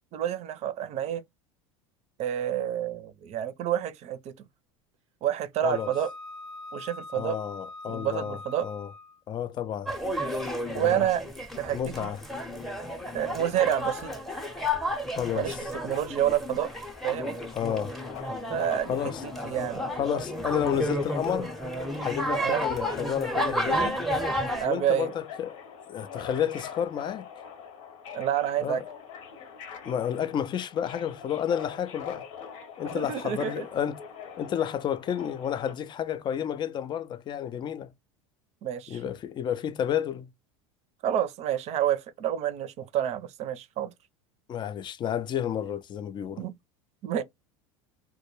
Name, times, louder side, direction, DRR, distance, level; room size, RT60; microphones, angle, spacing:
voice 1, 0.1-1.2 2.2-4.3 5.2-6.1 6.7-7.4 7.9-8.7 10.7-11.2 11.6-12.1 13.1-14.1 15.3-15.6 15.8-16.7 17.0-17.4 18.5-19.0 19.2-19.9 22.4-22.6 24.6-25.1 28.1-28.8 32.8-33.7 38.6-39.0 41.0-43.9 46.4-46.5 47.0-47.2, right 10 dB, 45° right, 0.5 m, -28 dB
Wind instrument woodwind instrument, 5.6-9.2, left 2 dB, 90° right, 0.6 m, -42 dB
voice 2, 7.1-8.9 9.3-10.0 10.7-11.0 11.7-12.2 15.2-15.6 17.5-17.9 18.9-19.2 20.0-21.5 22.0-24.0 24.6-25.6 25.9-27.3 28.6-28.8 29.8-32.3 32.8-34.0 34.4-37.9 38.9-40.3 44.5-46.4, left 9 dB, 30° left, 0.3 m, -31 dB
sound 1, 9.9-24.6, equal, ahead, 0.7 m, -32 dB
Subway metro underground, 16.9-35.7, left 7 dB, 80° left, 0.9 m, -44 dB
2.2 x 2.1 x 3.0 m
hypercardioid pair, 95°, 16 cm